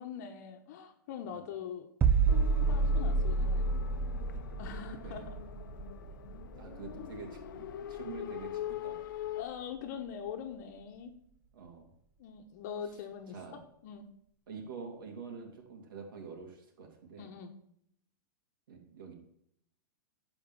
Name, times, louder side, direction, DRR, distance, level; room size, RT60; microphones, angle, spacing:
voice 1, 0.0-1.9 2.6-3.7 4.6-5.4 9.4-11.1 12.2-14.1 17.2-17.5, left 7 dB, 55° left, 6 dB, 1.1 m, -43 dB
sound 1, 2.0-7.7 8.0-8.2, right 4 dB, 15° right, 0.7 m, -30 dB
sound 2, 2.3-9.4, left 12 dB, 70° left, 0.7 m, -43 dB
voice 2, 6.6-9.0 11.5-11.9 13.3-13.7 14.5-17.3 18.7-19.1, right 5 dB, 80° right, 1 dB, 2.9 m, -46 dB
11.0 x 5.1 x 7.2 m, 0.72 s
hypercardioid pair, 140°, 11 cm